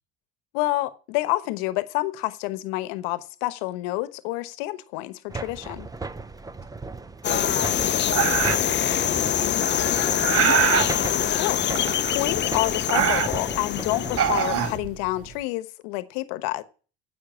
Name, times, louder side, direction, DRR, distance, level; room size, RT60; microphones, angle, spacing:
voice 1, 0.5-5.9 11.2-11.6 12.0-16.6, left 18 dB, 75° left, 1.1 m, -28 dB
sound 1, 5.3-14.4, right 3 dB, 10° right, 0.8 m, -37 dB
sound 2, 7.2-14.8, left 10 dB, 35° left, 0.7 m, -25 dB
voice 2, 7.3-10.6, right 4 dB, 65° right, 6.2 m, -41 dB
sound 3, 8.1-8.8 9.6-10.9 11.8-12.4 12.7-13.6 14.1-15.3, right 8 dB, 50° right, 1.3 m, -23 dB
9.8 x 7.9 x 7.4 m
hypercardioid pair, 75°, 30 cm